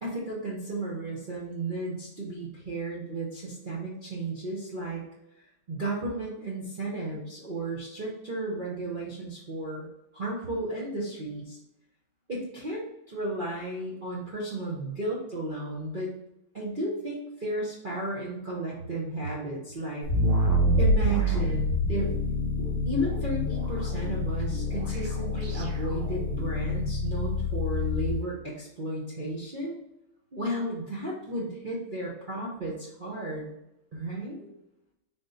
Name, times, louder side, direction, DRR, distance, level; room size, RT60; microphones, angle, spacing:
voice 1, 0.0-5.0 5.7-9.9 10.1-11.6 12.3-16.1 16.5-20.1 20.8-22.2 22.9-29.8 30.3-33.5 33.9-34.5, right 1 dB, 65° right, -6 dB, 0.5 m, -33 dB
sound 1, 20.0-28.2, left 1 dB, 85° right, 1.9 m, -27 dB
3.7 x 3.7 x 3.9 m, 0.87 s
omnidirectional pair, 2.3 m